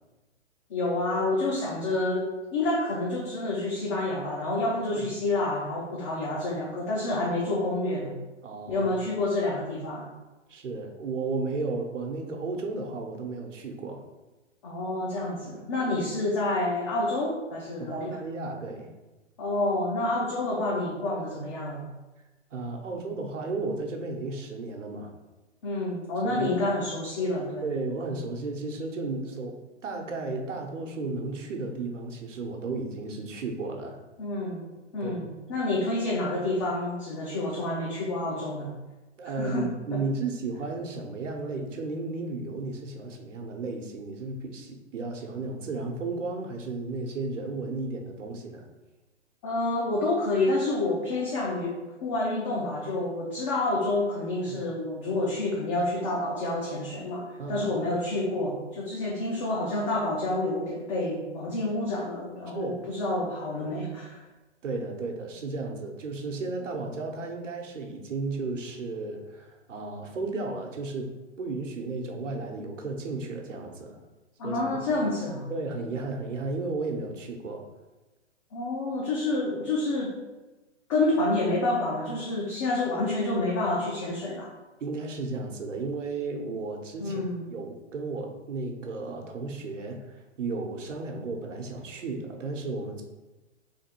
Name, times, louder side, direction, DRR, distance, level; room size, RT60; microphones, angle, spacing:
voice 1, 0.7-8.2 8.7-10.1 14.6-18.2 19.4-21.9 25.6-27.8 34.2-34.7 34.9-38.7 39.4-40.0 49.4-64.2 74.4-75.5 78.5-80.2 80.9-84.5 87.0-87.5, left 2 dB, 25° left, -3 dB, 0.5 m, -28 dB
voice 2, 8.4-8.9 10.5-14.0 17.8-18.9 22.5-25.1 26.2-26.6 27.6-34.0 35.0-35.2 39.2-48.6 54.5-54.6 57.4-57.7 62.5-62.8 64.6-71.1 71.4-74.0 74.4-74.6 74.9-75.0 75.5-77.6 84.8-87.2 87.5-93.0, right 3 dB, 90° right, 2 dB, 1.0 m, -34 dB
3.5 x 2.9 x 4.4 m, 1.1 s
hypercardioid pair, 145°, 36 cm